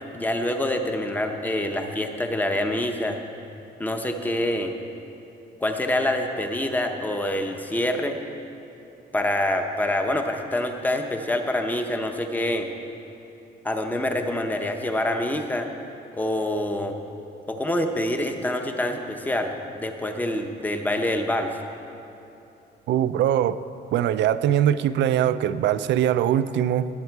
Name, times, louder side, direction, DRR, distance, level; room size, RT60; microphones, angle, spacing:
voice 1, 0.1-3.2 3.8-4.7 5.6-8.2 9.1-12.7 13.6-15.7 16.1-17.0 17.5-21.5, left 1 dB, 10° left, 5 dB, 0.7 m, -26 dB
voice 2, 22.9-23.6 23.9-26.9, right 10 dB, 75° right, 13 dB, 0.5 m, -22 dB
19.0 x 8.3 x 4.6 m, 2.9 s
cardioid pair, 175°, 18 cm